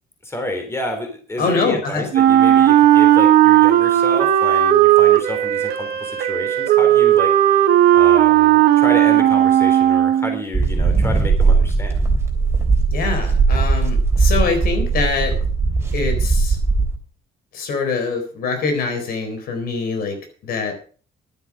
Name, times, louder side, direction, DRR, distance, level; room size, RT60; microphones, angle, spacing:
voice 1, 0.2-7.3 7.9-12.0, left 1 dB, 15° left, 4 dB, 3.5 m, -29 dB
voice 2, 1.4-2.1 12.9-15.3 15.9-16.6 17.5-20.2 20.4-20.7, left 4 dB, 70° left, 5 dB, 4.0 m, -24 dB
Wind instrument woodwind instrument, 2.1-10.4, right 12 dB, 80° right, 1.3 m, -14 dB
sound 1, 10.5-17.0, right 4 dB, 15° right, 3.4 m, -18 dB
11.5 x 9.4 x 6.1 m, 0.41 s
cardioid pair, 140°, 16 cm